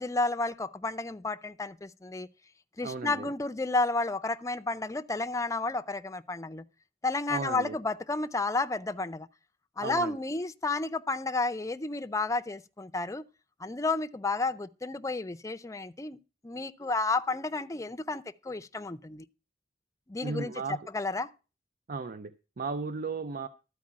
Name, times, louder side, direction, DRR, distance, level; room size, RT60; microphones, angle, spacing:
voice 1, 0.0-2.3 2.8-6.6 7.0-9.3 9.8-13.2 13.6-16.2 16.4-19.3 20.1-21.3, left 3 dB, 20° left, 0.5 m, -31 dB
voice 2, 2.8-3.3 7.3-7.8 9.8-10.2 20.2-20.8 21.9-23.5, right 4 dB, 50° right, 0.6 m, -35 dB
12.5 x 4.7 x 8.6 m
head